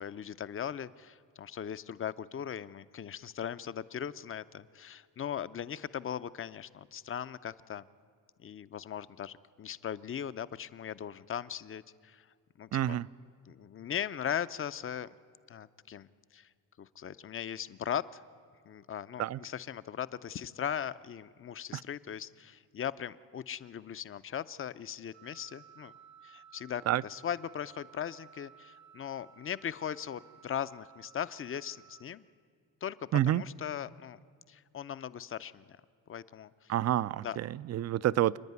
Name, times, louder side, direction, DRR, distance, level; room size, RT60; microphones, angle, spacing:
voice 1, 0.0-7.8 8.4-12.3 12.6-13.0 13.5-15.1 15.5-16.5 16.8-18.2 18.7-25.9 26.2-32.3 32.8-34.2 34.5-35.6 36.1-36.7 37.2-37.4, left 9 dB, 35° left, 15 dB, 0.5 m, -39 dB
voice 2, 12.7-13.1 19.2-19.4 21.7-21.8 26.9-27.0 33.1-33.4 36.7-38.4, right 12 dB, 45° right, 19 dB, 0.4 m, -28 dB
Wind instrument woodwind instrument, 25.1-32.1, right 8 dB, 75° right, 1.4 m, -57 dB
28.0 x 10.0 x 9.5 m, 2.1 s
cardioid pair, 105°, 36 cm